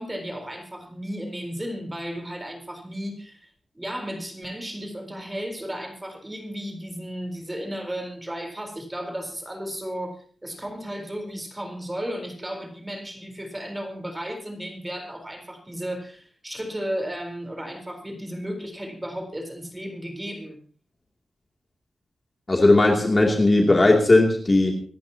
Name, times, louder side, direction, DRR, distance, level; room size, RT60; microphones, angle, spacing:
voice 1, 0.0-20.6, equal, 10° right, 4 dB, 4.1 m, -34 dB
voice 2, 22.5-24.8, left 2 dB, 25° left, 1 dB, 2.7 m, -17 dB
26.0 x 13.5 x 2.9 m, 0.43 s
wide cardioid pair, 140°, 0 cm